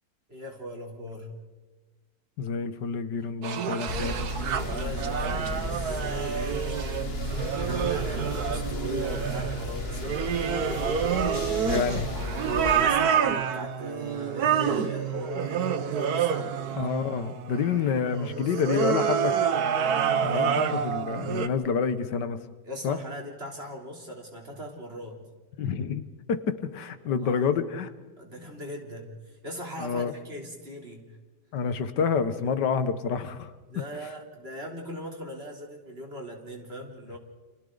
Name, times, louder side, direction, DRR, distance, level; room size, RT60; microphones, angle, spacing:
voice 1, 0.3-1.3 4.6-10.4 10.6-11.8 12.4-16.8 17.7-18.9 20.2-20.5 22.6-25.2 27.0-27.4 28.2-31.1 33.7-37.2, equal, 35° right, 1 dB, 3.7 m, -39 dB
voice 2, 2.4-4.2 11.6-12.0 16.8-19.4 20.2-22.4 22.8-23.0 25.6-26.0 26.3-27.9 29.8-30.1 31.5-33.5, left 6 dB, 85° left, 11 dB, 1.7 m, -28 dB
sound 1, 3.4-21.5, right 7 dB, 65° right, 1.5 m, -28 dB
sound 2, 3.9-12.9, left 2 dB, 40° left, 1.5 m, -34 dB
30.0 x 27.0 x 3.9 m, 1.3 s
omnidirectional pair, 1.8 m